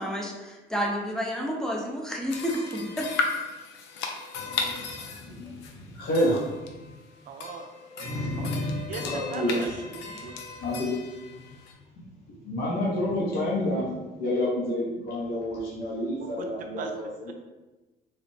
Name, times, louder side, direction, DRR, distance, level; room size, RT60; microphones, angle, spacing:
voice 1, 0.0-3.1, equal, 5° left, -1 dB, 0.5 m, -30 dB
sound 1, 2.3-11.7, left 4 dB, 85° left, 0.4 m, -36 dB
voice 2, 4.3-6.9 8.0-9.7 10.2-10.3 10.6-11.2 12.4-17.3, left 1 dB, 65° left, -6 dB, 0.8 m, -29 dB
voice 3, 7.3-7.7 8.0-8.1 8.4-10.4 16.4-16.5 16.8-16.9 17.3-17.4, right 5 dB, 55° right, 4 dB, 0.4 m, -38 dB
3.3 x 2.0 x 2.6 m, 1.1 s
cardioid pair, 110°, 17 cm